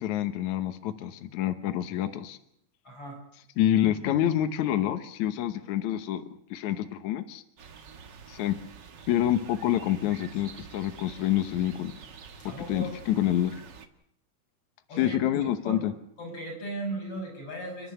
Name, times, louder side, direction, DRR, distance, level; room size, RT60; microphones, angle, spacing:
voice 1, 0.0-2.4 3.6-6.2 6.5-7.4 8.3-8.6 9.1-11.9 12.7-13.5 15.0-15.9, left 12 dB, 70° left, 8 dB, 2.4 m, -27 dB
voice 2, 2.8-3.2 12.4-13.0 14.9-15.4 15.6-15.9 16.2-17.9, right 1 dB, 45° left, 1 dB, 7.1 m, -37 dB
sound 1, 7.6-13.9, right 6 dB, 45° right, 1.5 m, -47 dB
30.0 x 11.5 x 9.6 m, 0.74 s
omnidirectional pair, 3.6 m